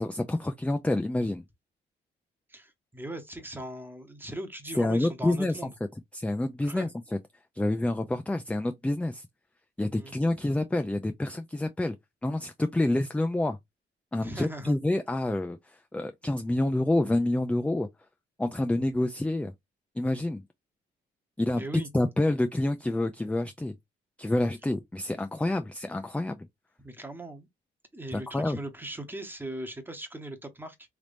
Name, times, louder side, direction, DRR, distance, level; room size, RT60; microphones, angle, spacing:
voice 1, 0.0-1.4 4.8-5.6 6.1-6.9 7.6-9.3 9.8-12.0 12.2-13.6 14.1-17.9 18.4-19.5 20.0-20.4 21.4-21.6 21.9-23.7 24.2-26.5 28.1-28.6, left 1 dB, 5° left, 0.4 m, -28 dB
voice 2, 2.5-5.7 6.6-6.9 10.0-10.2 14.2-14.8 18.7-18.8 21.6-21.9 26.8-27.5 27.9-30.8, right 1 dB, 10° right, 1.0 m, -39 dB
3.4 x 3.0 x 2.5 m
cardioid pair, 90°, 20 cm